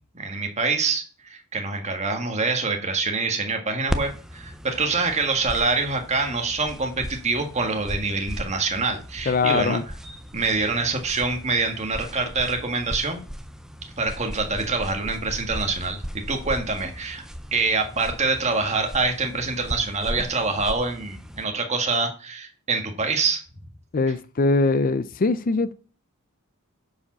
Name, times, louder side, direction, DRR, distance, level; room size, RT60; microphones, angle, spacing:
voice 1, 0.1-9.8 10.3-13.2 14.0-17.2 17.5-23.4, right 3 dB, 30° right, 1.7 m, -25 dB
sound 1, 3.9-21.4, equal, ahead, 0.6 m, -37 dB
voice 2, 9.3-9.8 23.9-25.7, left 3 dB, 40° left, 0.5 m, -22 dB
10.0 x 5.0 x 6.2 m
head